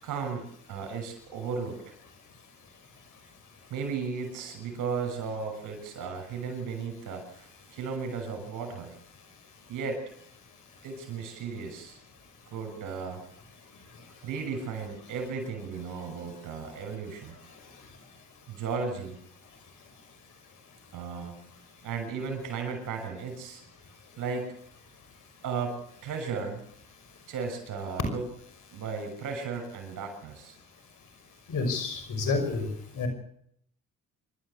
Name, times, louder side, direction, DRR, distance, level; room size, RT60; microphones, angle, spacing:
voice 1, 0.0-1.8 3.7-8.9 9.7-10.0 10.8-12.0 12.5-13.2 14.2-17.4 18.5-19.2 20.9-21.4 21.8-23.6 24.2-24.5 25.4-26.6 27.3-28.2 28.7-30.5, right 5 dB, 80° right, 6 dB, 6.5 m, -35 dB
voice 2, 31.5-32.7 32.9-33.1, left 3 dB, 75° left, 7 dB, 5.9 m, -29 dB
26.0 x 12.5 x 8.3 m, 0.70 s
supercardioid pair, 55°, 31 cm